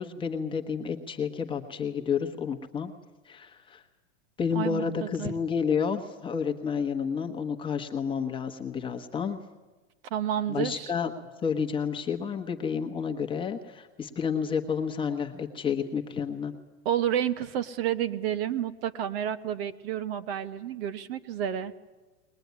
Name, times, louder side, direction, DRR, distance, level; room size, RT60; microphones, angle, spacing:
voice 1, 0.0-2.9 3.2-3.8 4.4-9.4 10.5-11.1 11.4-16.5, left 6 dB, 15° left, 3 dB, 1.3 m, -30 dB
voice 2, 4.5-5.3 10.1-10.9 16.8-21.7, right 10 dB, 50° right, 12 dB, 1.2 m, -30 dB
21.0 x 21.0 x 9.5 m, 1.2 s
supercardioid pair, 160°, 38 cm